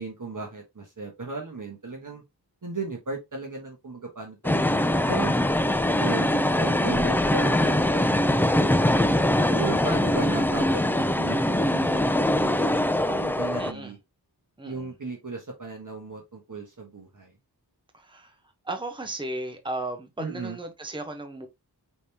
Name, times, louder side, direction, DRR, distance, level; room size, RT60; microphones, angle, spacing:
voice 1, 0.0-2.2 2.6-5.4 5.9-8.9 9.4-12.8 13.0-14.0 14.6-17.4 20.2-20.6, right 3 dB, 50° right, 1.3 m, -36 dB
sound 1, 4.4-13.7, left 1 dB, 5° left, 0.3 m, -23 dB
voice 2, 4.9-5.4 13.6-14.0 14.6-14.9 17.9-18.4 18.6-21.5, right 2 dB, 10° right, 0.9 m, -36 dB
5.2 x 3.4 x 2.8 m
wide cardioid pair, 70°, 41 cm